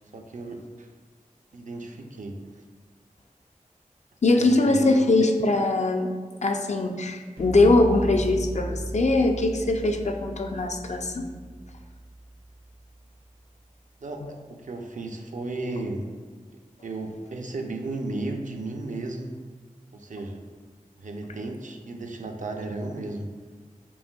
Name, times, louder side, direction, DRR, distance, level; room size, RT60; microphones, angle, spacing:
voice 1, 0.1-0.9 1.5-2.4 4.3-5.0 14.0-16.1 16.8-19.3 19.9-20.4 21.0-23.3, right 2 dB, 65° right, 3 dB, 0.4 m, -34 dB
voice 2, 4.2-6.1 6.4-11.3 14.2-14.3 15.7-15.8, left 2 dB, 55° left, 5 dB, 0.4 m, -22 dB
sound 1, 7.4-13.4, right 1 dB, 90° right, 1.0 m, -36 dB
5.3 x 2.5 x 2.2 m, 1.5 s
wide cardioid pair, 50°, 14 cm